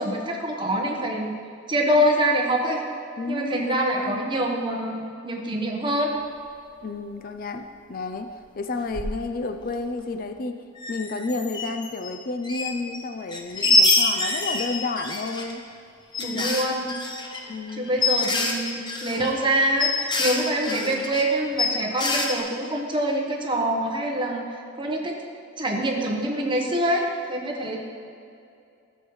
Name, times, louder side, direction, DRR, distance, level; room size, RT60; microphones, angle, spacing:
voice 1, 0.0-1.3 1.7-2.8 3.3-6.2 16.2-16.9 17.7-19.9 20.2-24.4 24.7-25.2 25.6-27.8, right 1 dB, 25° right, 1 dB, 1.0 m, -25 dB
voice 2, 3.2-4.2 6.8-8.3 8.6-15.6 16.3-16.5 17.5-17.9 18.3-18.5 20.7-21.1, left 3 dB, 45° left, 7 dB, 0.4 m, -31 dB
sound 1, 8.9-9.2 9.6-9.7 9.9-10.0 10.8-12.1 12.4-13.0 13.3-15.5 16.1-21.2 21.6-22.4, left 3 dB, 25° left, 0.8 m, -25 dB
13.0 x 7.3 x 3.1 m, 2.4 s
head